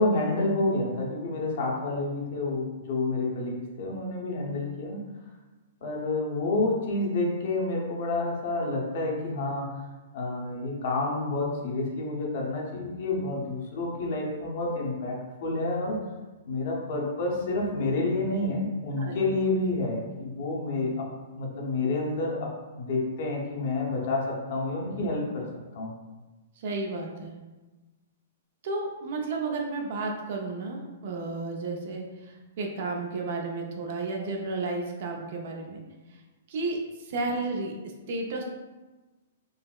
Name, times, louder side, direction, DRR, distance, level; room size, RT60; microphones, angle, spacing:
voice 1, 0.0-5.0 5.8-9.9 10.1-16.0 16.5-21.1 21.3-22.5 22.8-25.5 25.7-25.9, left 2 dB, 50° left, -2 dB, 0.7 m, -29 dB
voice 2, 26.6-27.4 28.6-35.8 36.5-37.7 38.1-38.4, right 3 dB, 50° right, 1 dB, 0.5 m, -32 dB
3.9 x 2.0 x 2.3 m, 1.2 s
hypercardioid pair, 160°, 0 cm